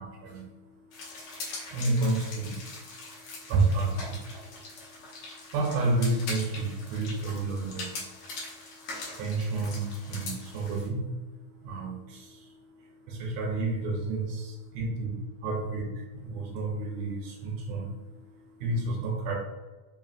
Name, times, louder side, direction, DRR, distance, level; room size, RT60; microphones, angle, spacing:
voice 1, 0.0-5.1 5.5-19.4, right 2 dB, 80° right, 1 dB, 1.7 m, -32 dB
sound 1, 0.9-10.9, left 3 dB, 70° left, 2.2 m, -42 dB
4.9 x 2.8 x 2.4 m, 1.2 s
omnidirectional pair, 3.4 m